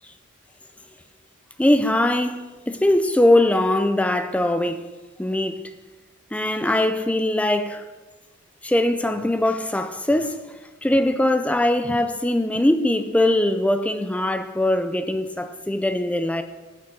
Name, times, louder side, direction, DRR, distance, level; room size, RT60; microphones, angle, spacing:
voice 1, 1.6-4.9 5.2-5.6 6.3-7.8 8.6-16.4, left 1 dB, 5° left, 0.4 m, -21 dB
8.0 x 6.7 x 5.3 m
head